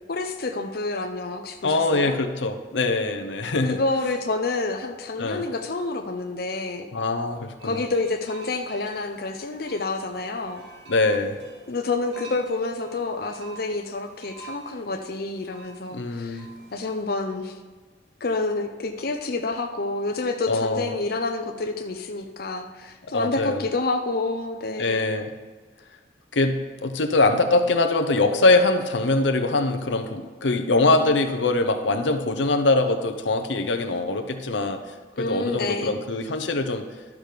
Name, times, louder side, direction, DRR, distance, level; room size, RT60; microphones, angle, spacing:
voice 1, 0.1-2.1 3.6-6.9 7.6-10.6 11.7-16.5 16.7-17.5 18.2-25.3 35.2-36.0, left 3 dB, 55° left, 4 dB, 0.7 m, -28 dB
voice 2, 1.6-3.8 5.2-5.5 6.9-7.8 10.9-11.4 15.9-16.5 20.5-20.9 23.1-23.6 24.8-25.3 26.3-36.9, left 2 dB, 90° left, 6 dB, 0.8 m, -23 dB
sound 1, 7.6-17.0, right 4 dB, 80° right, 2.9 m, -47 dB
12.0 x 6.1 x 5.1 m, 1.3 s
head